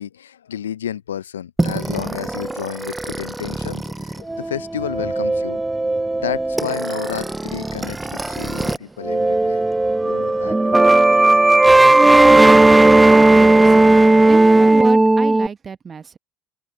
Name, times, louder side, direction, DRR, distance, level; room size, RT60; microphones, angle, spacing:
voice 1, 0.0-5.6 6.2-9.6 10.0-11.3, left 9 dB, 80° left, 1.0 m, -31 dB
sound 1, 1.6-8.8 9.0-15.5, right 2 dB, 10° right, 0.8 m, -15 dB
sound 2, 3.5-5.0 6.6-6.7 9.0-9.1 9.3-15.1, left 12 dB, 45° left, 3.1 m, -46 dB
voice 2, 7.8-8.1 11.1-11.5 13.2-16.2, right 6 dB, 30° right, 1.1 m, -33 dB
open air
figure-of-eight pair, 65°, 0 cm